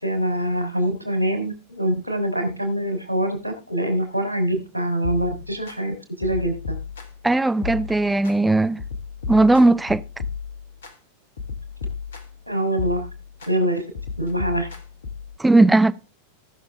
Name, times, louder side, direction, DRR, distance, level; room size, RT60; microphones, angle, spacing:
voice 1, 0.0-6.8 12.5-13.1 13.5-13.8 14.2-14.7, right 1 dB, 90° left, 3.3 m, -24 dB
sound 1, 5.0-5.8 6.2-7.3 7.6-8.4 8.8-10.9 11.4-12.4 12.8-13.5 13.9-15.4, left 5 dB, 65° left, 1.8 m, -33 dB
voice 2, 7.2-8.8 9.3-10.0 15.4-15.9, right 2 dB, 5° right, 0.6 m, -17 dB
18.0 x 6.6 x 3.4 m
figure-of-eight pair, 90°, 0 cm